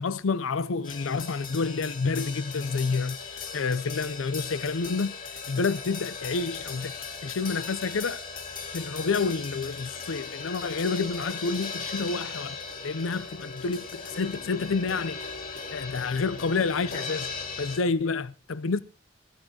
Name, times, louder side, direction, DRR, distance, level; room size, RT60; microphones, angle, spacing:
voice 1, 0.0-6.9 7.2-8.2 8.7-15.3 15.7-17.3 17.6-18.8, left 4 dB, 85° left, 0.6 m, -29 dB
sound 1, 0.8-17.8, left 5 dB, 45° left, 3.4 m, -38 dB
16.0 x 15.5 x 2.9 m
head